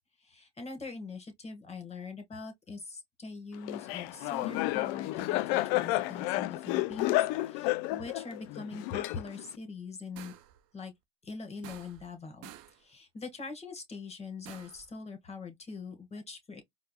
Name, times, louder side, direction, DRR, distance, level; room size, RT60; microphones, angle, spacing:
voice 1, 0.2-10.3 10.7-10.9 11.2-16.6, left 4 dB, 20° left, 1.6 m, -43 dB
Laughter, 3.7-9.5, left 17 dB, 50° left, 0.4 m, -31 dB
sound 1, 10.2-10.6 11.6-12.2 12.4-12.8 14.4-14.9, right 12 dB, 45° right, 0.7 m, -50 dB
4.5 x 2.1 x 2.3 m
hypercardioid pair, 90°, 34 cm